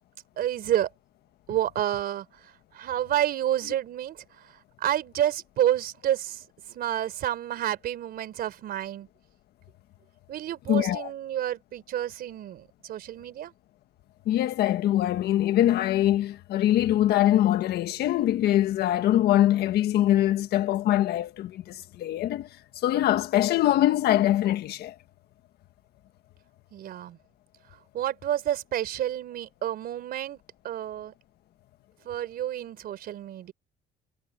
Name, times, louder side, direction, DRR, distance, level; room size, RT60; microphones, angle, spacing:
voice 1, 0.4-0.9 1.5-9.1 10.3-13.5 26.7-27.2 27.7-30.4 30.6-31.1 32.0-33.5, right 11 dB, 65° right, 4.1 m, -30 dB
voice 2, 10.7-11.1 14.2-22.5 22.8-24.9, left 13 dB, 70° left, 1.6 m, -23 dB
cardioid pair, 110°, 17 cm